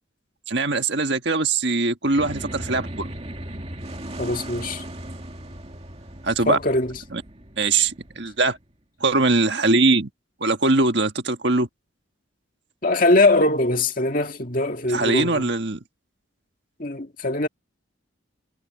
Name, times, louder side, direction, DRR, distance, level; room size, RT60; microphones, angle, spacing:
voice 1, 0.5-3.1 6.2-6.6 7.1-7.2 7.6-8.6 9.0-10.1 10.4-11.7 14.9-15.8, right 3 dB, 60° right, 1.7 m, -21 dB
sound 1, 2.1-8.7, right 1 dB, 30° right, 2.3 m, -37 dB
voice 2, 4.2-4.8 6.5-7.0 12.8-15.5 16.8-17.5, left 2 dB, 45° left, 2.1 m, -21 dB
head